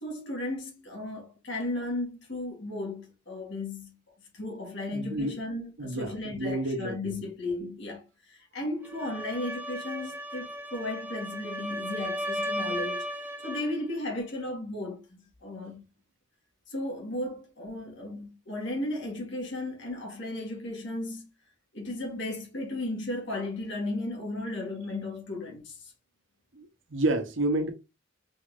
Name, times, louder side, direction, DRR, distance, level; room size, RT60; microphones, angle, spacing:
voice 1, 0.0-4.0 4.3-13.1 13.4-15.9 16.7-21.3 21.7-25.9, left 2 dB, 65° left, 1.7 m, -35 dB
voice 2, 4.9-5.4 5.8-7.1 26.5-27.7, right 1 dB, 75° right, 1.0 m, -30 dB
sound 1, 8.8-13.7, equal, 10° right, 0.6 m, -35 dB
4.1 x 3.6 x 2.5 m
head